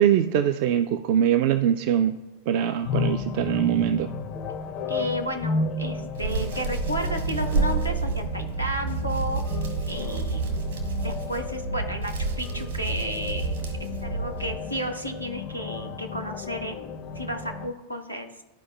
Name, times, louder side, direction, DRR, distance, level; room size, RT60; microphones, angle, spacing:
voice 1, 0.0-2.2 2.5-4.1, right 10 dB, 45° right, 9 dB, 0.3 m, -22 dB
sound 1, 2.8-17.7, left 4 dB, 30° left, 0.4 m, -34 dB
voice 2, 4.9-9.4 9.9-10.6 11.0-13.5 14.0-18.4, equal, 90° right, 2 dB, 0.9 m, -32 dB
Hands, 6.1-14.5, right 4 dB, 65° right, 1.4 m, -29 dB
12.5 x 4.7 x 2.4 m, 1.1 s
figure-of-eight pair, 90°, 0 cm